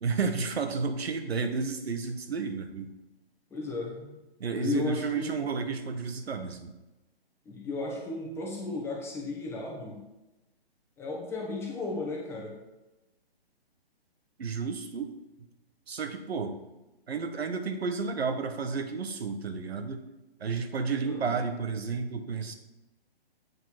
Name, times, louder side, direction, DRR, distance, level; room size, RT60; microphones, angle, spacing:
voice 1, 0.0-2.9 4.4-6.7 14.4-15.1 15.9-16.6 17.1-20.1 20.4-22.5, right 5 dB, 75° right, 7 dB, 1.3 m, -32 dB
voice 2, 3.5-4.2 4.5-5.4 7.4-10.0 11.0-12.5 21.0-21.3, left 3 dB, 10° left, -2 dB, 1.1 m, -34 dB
8.0 x 5.5 x 6.1 m, 1.0 s
hypercardioid pair, 155°, 31 cm